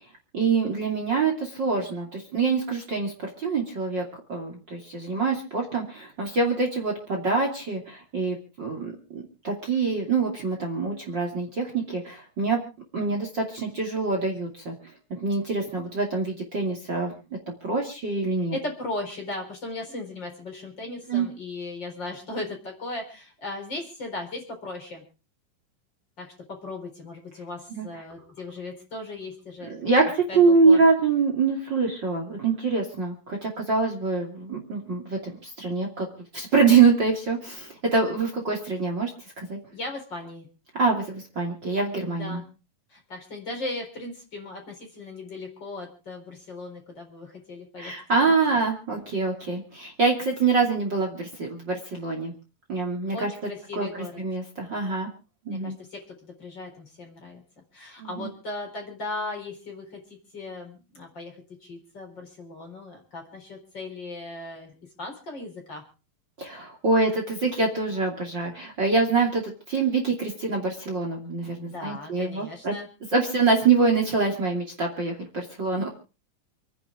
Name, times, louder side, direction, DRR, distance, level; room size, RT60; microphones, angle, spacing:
voice 1, 0.3-4.0 4.3-12.6 12.9-14.7 15.1-17.1 17.6-18.6 21.1-21.3 27.7-27.9 29.6-36.1 36.3-39.1 39.4-39.6 40.7-42.4 47.8-52.3 52.7-53.3 53.8-53.9 54.2-55.1 55.4-55.7 58.0-58.3 66.4-72.7 73.1-75.9, right 4 dB, 35° right, 2 dB, 3.0 m, -25 dB
voice 2, 18.5-25.0 26.2-29.8 30.3-30.8 39.7-40.5 42.1-42.5 42.9-47.9 48.5-48.6 53.1-54.2 55.5-57.4 57.7-65.8 71.6-72.9, left 2 dB, 30° left, 2 dB, 4.8 m, -37 dB
28.5 x 10.5 x 3.6 m, 0.34 s
omnidirectional pair, 3.8 m